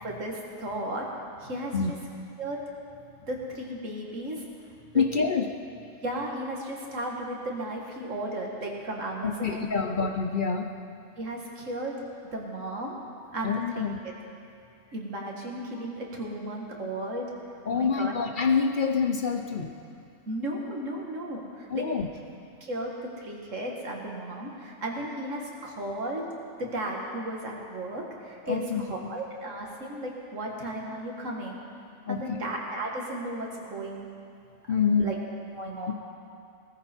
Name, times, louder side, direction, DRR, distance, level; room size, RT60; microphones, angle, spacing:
voice 1, 0.0-1.1 1.4-1.7 2.4-2.6 3.3-4.4 4.9-5.0 6.0-9.9 11.2-12.0 12.3-13.0 13.3-13.9 14.9-17.3 17.7-18.1 20.3-21.8 22.6-26.2 26.6-31.6 32.1-34.1 34.7-35.2 35.5-35.9, right 1 dB, 80° right, -1 dB, 2.3 m, -34 dB
voice 2, 4.9-5.4 9.2-10.7 13.4-14.0 17.7-19.7 21.7-22.1 28.5-28.8 32.1-32.2 34.7-35.1 35.9-36.0, left 5 dB, 45° left, 4 dB, 0.8 m, -26 dB
18.5 x 14.0 x 4.5 m, 2.4 s
omnidirectional pair, 1.3 m